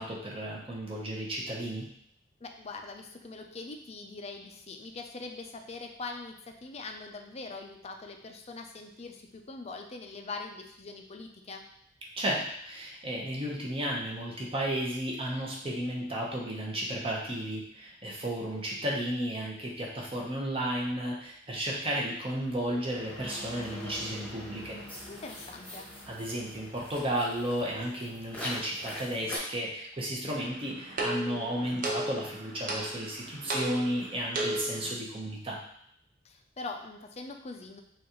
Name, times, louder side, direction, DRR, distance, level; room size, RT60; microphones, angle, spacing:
voice 1, 0.0-1.8 12.2-24.8 26.1-35.6, right 1 dB, 30° right, -3 dB, 1.0 m, -33 dB
voice 2, 2.4-11.7 25.1-25.9 36.2-37.8, left 3 dB, 35° left, 4 dB, 0.5 m, -42 dB
sound 1, 22.5-29.4, left 1 dB, 10° left, 1.1 m, -43 dB
sound 2, 30.3-34.9, right 1 dB, 50° right, 0.8 m, -35 dB
6.1 x 2.5 x 3.0 m, 0.68 s
head